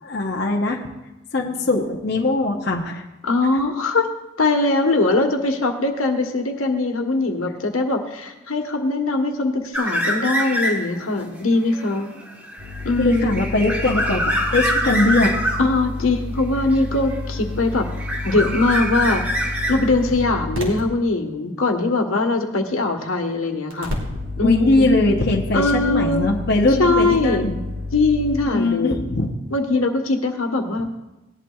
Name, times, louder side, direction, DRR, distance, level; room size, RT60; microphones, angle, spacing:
voice 1, 0.0-0.8 1.3-3.0 13.0-15.3 24.4-27.6 28.5-29.3, left 2 dB, 50° left, 0 dB, 0.8 m, -21 dB
voice 2, 3.2-4.1 4.4-12.1 12.8-13.4 15.6-17.9 18.2-19.2 19.7-23.9 24.4-24.9 25.5-26.2 26.8-27.5 27.9-29.0 29.5-30.9, left 2 dB, 85° left, 4 dB, 1.3 m, -21 dB
sound 1, 9.7-11.0 11.4-15.7 16.7-17.5 17.8-20.2, equal, 10° right, 1.1 m, -25 dB
sound 2, 12.6-20.8 23.7-28.4, left 2 dB, 75° right, 2.6 m, -30 dB
18.5 x 11.5 x 2.4 m, 1.0 s
head